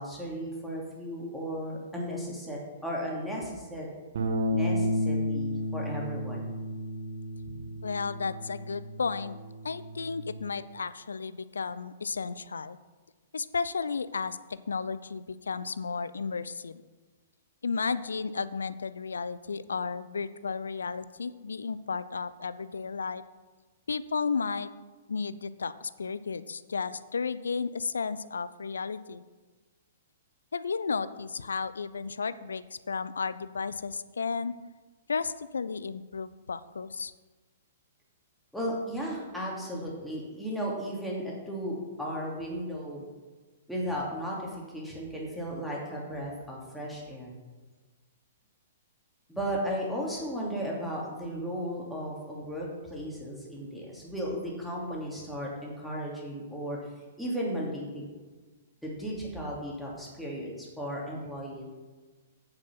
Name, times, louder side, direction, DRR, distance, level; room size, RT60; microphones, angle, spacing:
voice 1, 0.0-3.9 4.5-6.6 38.5-43.0 43.7-47.3 49.3-56.8 57.2-58.0 58.8-61.6, equal, ahead, -5 dB, 2.8 m, -35 dB
Bass guitar, 4.1-10.4, left 1 dB, 55° right, 2.2 m, -32 dB
voice 2, 7.8-9.4 9.6-12.8 13.3-14.4 14.7-16.8 17.6-23.2 23.9-24.7 25.1-29.2 30.5-34.5 35.1-37.1, left 5 dB, 70° left, 16 dB, 0.5 m, -33 dB
9.0 x 7.1 x 5.8 m, 1.3 s
figure-of-eight pair, 115°, 0 cm